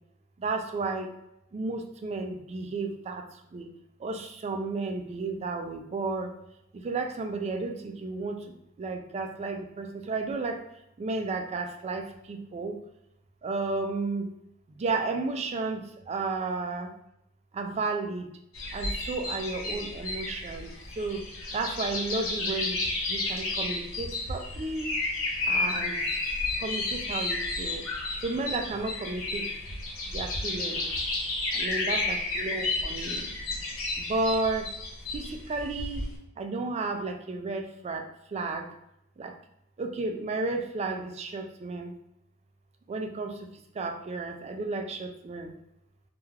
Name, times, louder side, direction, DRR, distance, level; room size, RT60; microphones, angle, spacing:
voice 1, 0.4-1.1 1.5-3.2 3.5-3.7 4.0-6.3 6.7-8.4 8.8-10.6 11.0-12.8 13.4-14.3 14.8-15.8 16.1-16.9 17.5-18.3 18.7-20.7 21.0-21.2 21.5-22.8 23.1-24.9 25.4-26.0 26.6-27.8 28.2-29.4 30.1-30.9 31.5-33.2 34.0-34.7 35.1-36.1 36.4-38.7 39.2-39.3 39.8-41.9 42.9-43.4 43.8-45.5, right 3 dB, 30° right, 4 dB, 0.3 m, -32 dB
sound 1, 18.5-36.1, left 2 dB, 80° left, 0.6 m, -32 dB
3.1 x 2.3 x 2.2 m, 0.80 s
head